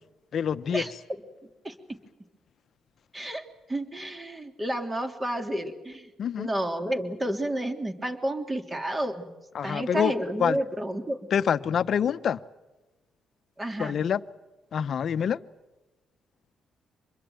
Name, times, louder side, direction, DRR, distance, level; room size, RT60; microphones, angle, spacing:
voice 1, 0.3-0.8 6.2-6.5 9.5-10.1 10.4-10.6 11.3-12.4 13.8-14.2 14.7-15.4, left 8 dB, 60° left, 0.9 m, -26 dB
voice 2, 1.6-2.0 3.1-6.1 6.4-9.3 9.6-11.2 13.6-14.0, right 1 dB, 20° right, 3.3 m, -31 dB
26.0 x 22.0 x 8.0 m
cardioid pair, 90°, 0 cm